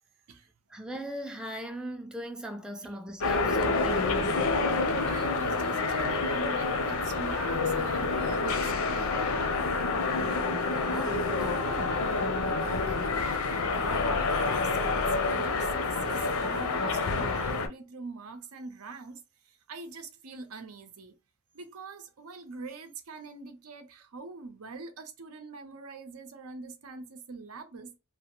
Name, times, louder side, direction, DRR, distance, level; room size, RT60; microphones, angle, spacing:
voice 1, 0.7-4.4 10.3-12.1, equal, 5° right, 0.3 m, -39 dB
sound 1, 3.2-17.7, left 3 dB, 80° left, 0.6 m, -28 dB
voice 2, 5.1-9.5 12.4-21.1 21.5-28.0, right 4 dB, 90° right, 0.7 m, -44 dB
3.0 x 2.1 x 2.9 m
head